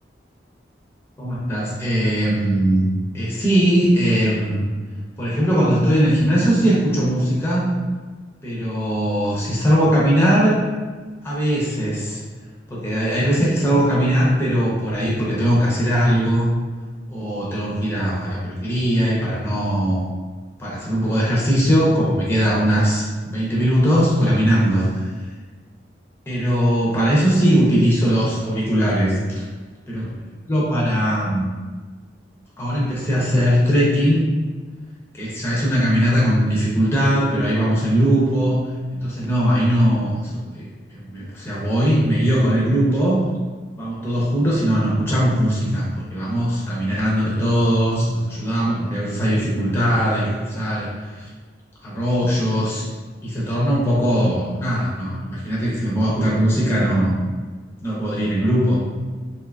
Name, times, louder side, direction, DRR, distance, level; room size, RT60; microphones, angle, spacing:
voice 1, 1.2-2.9 3.1-4.7 5.2-7.7 8.4-10.7 11.2-12.2 12.7-16.5 17.1-20.1 20.6-25.1 26.3-29.4 29.9-30.1 30.5-31.4 32.6-34.3 35.1-43.2 43.8-51.3 51.8-52.9 53.2-57.2 57.8-58.8, equal, 15° left, -6 dB, 0.5 m, -20 dB
2.6 x 2.3 x 2.2 m, 1.4 s
head